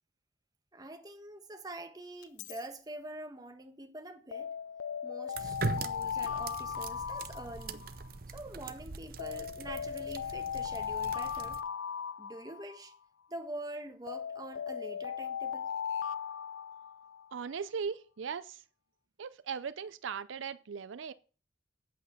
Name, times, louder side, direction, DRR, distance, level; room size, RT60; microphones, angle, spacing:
voice 1, 0.7-4.5 5.0-7.9 8.3-11.6 12.2-12.9 13.3-15.7, right 1 dB, 20° right, 1.3 m, -45 dB
Alarm, 2.2-2.6 4.3-8.1 9.2-13.0 14.1-17.3, left 7 dB, 85° left, 0.4 m, -38 dB
sound 1, 5.3-11.6, right 4 dB, 50° right, 0.7 m, -41 dB
voice 2, 17.3-18.6 19.2-21.1, right 6 dB, 80° right, 0.5 m, -38 dB
8.4 x 8.2 x 5.8 m
head